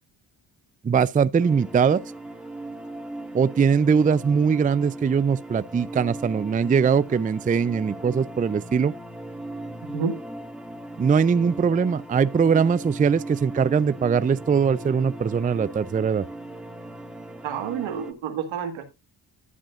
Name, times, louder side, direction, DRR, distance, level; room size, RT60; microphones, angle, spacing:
voice 1, 0.8-2.0 3.3-8.9 11.0-16.2, right 6 dB, 20° right, 0.4 m, -21 dB
sound 1, 1.4-18.1, right 2 dB, ahead, 1.8 m, -38 dB
voice 2, 17.4-18.8, right 7 dB, 85° right, 1.7 m, -29 dB
12.0 x 7.4 x 2.4 m
supercardioid pair, 45°, 46 cm